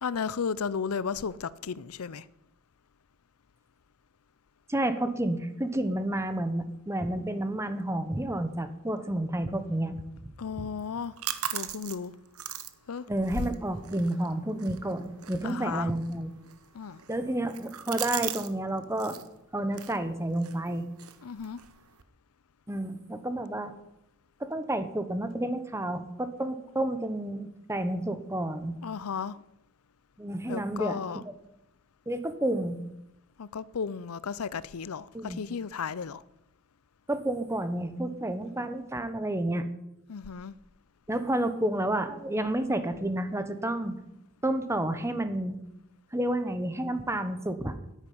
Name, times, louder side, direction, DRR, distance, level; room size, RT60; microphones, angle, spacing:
voice 1, 0.0-2.3 10.4-11.1 11.5-12.1 12.9-13.1 15.4-15.9 16.7-17.0 21.2-21.6 28.8-29.4 30.5-31.2 33.4-36.2 40.1-40.5, left 6 dB, 80° left, 0.6 m, -34 dB
voice 2, 4.7-10.2 10.6-10.7 13.1-16.3 17.1-19.2 19.5-20.9 22.7-23.7 24.4-28.8 30.2-31.0 32.1-32.8 35.1-35.4 37.1-39.7 41.1-44.0 44.4-45.6 46.1-47.7, right 1 dB, 15° right, 1.1 m, -30 dB
sound 1, 10.8-18.5 18.8-19.3 19.7-22.0, right 11 dB, 85° right, 1.0 m, -40 dB
10.0 x 9.7 x 9.5 m
head